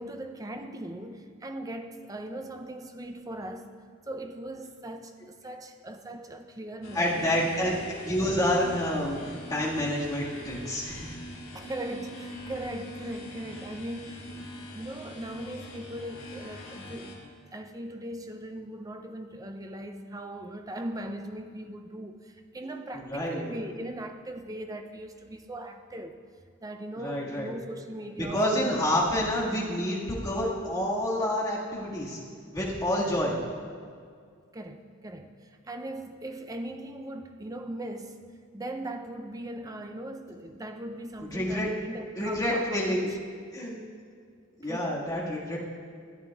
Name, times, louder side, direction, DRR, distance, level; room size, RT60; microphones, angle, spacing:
voice 1, 0.0-3.7 4.1-7.5 11.5-17.1 17.5-26.2 26.6-28.7 33.0-33.2 34.5-38.2 38.5-43.2 44.6-45.0, right 1 dB, 15° right, 6 dB, 0.4 m, -39 dB
sound 1, 6.8-17.2, left 1 dB, 75° left, 2.1 m, -43 dB
voice 2, 6.9-11.1 22.9-23.4 27.0-27.5 28.2-32.2 32.5-33.3 41.3-41.7 42.2-43.1 43.5-43.8 44.6-45.6, left 1 dB, 20° left, -6 dB, 1.7 m, -28 dB
14.5 x 8.9 x 2.3 m, 2.1 s
head